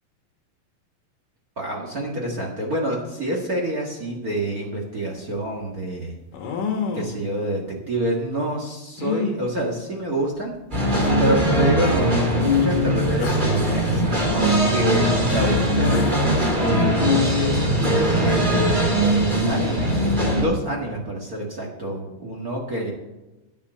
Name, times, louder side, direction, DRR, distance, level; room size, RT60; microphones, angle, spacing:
voice 1, 1.6-6.2 6.9-10.5 11.2-16.0 16.3-19.9 20.3-22.9, right 1 dB, 50° right, -1 dB, 1.0 m, -27 dB
sound 1, 4.8-4.9 6.3-7.2 9.0-9.4 10.4-10.5 11.0-11.1 13.2-13.6 15.5-15.6 15.9-16.3, left 6 dB, 65° left, 2.7 m, -29 dB
sound 2, 10.7-20.4, equal, 15° right, 2.0 m, -20 dB
10.5 x 8.6 x 6.3 m, 1.1 s
omnidirectional pair, 4.4 m